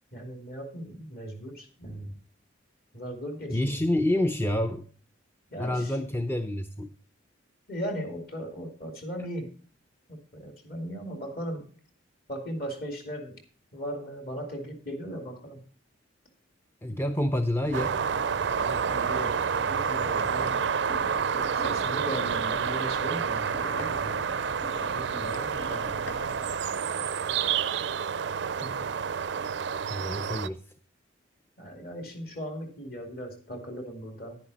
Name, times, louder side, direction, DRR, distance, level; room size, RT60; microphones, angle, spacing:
voice 1, 0.1-2.1 2.9-3.8 5.5-5.9 7.7-9.5 10.1-11.7 12.3-13.4 13.7-15.6 18.7-20.5 21.5-24.2 24.9-26.0 28.6-28.8 31.6-34.4, equal, 50° left, 4 dB, 2.6 m, -38 dB
voice 2, 3.5-4.9 5.6-6.9 16.8-18.0 27.2-27.4 29.9-30.7, left 1 dB, 10° left, 7 dB, 0.5 m, -28 dB
sound 1, 17.6-26.6, left 1 dB, 90° left, 1.7 m, -42 dB
sound 2, 17.7-30.5, right 7 dB, 60° right, 0.4 m, -29 dB
10.5 x 10.0 x 4.1 m, 0.42 s
head